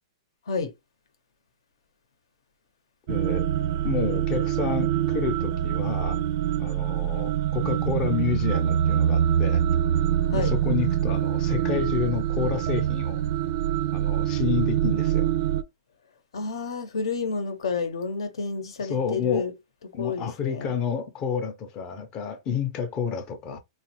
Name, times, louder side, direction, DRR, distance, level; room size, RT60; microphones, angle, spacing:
voice 1, 3.1-3.5 3.8-6.2 6.6-9.6 10.3-13.2 13.9-15.3 18.8-19.5 19.9-23.6, left 6 dB, 25° left, 0.5 m, -30 dB
sound 1, 3.1-15.6, right 10 dB, 45° right, 0.4 m, -25 dB
voice 2, 3.9-4.6 10.3-10.6 16.3-19.5 20.0-20.8, left 4 dB, 80° left, 0.8 m, -30 dB
3.2 x 2.4 x 2.9 m
hypercardioid pair, 155°, 3 cm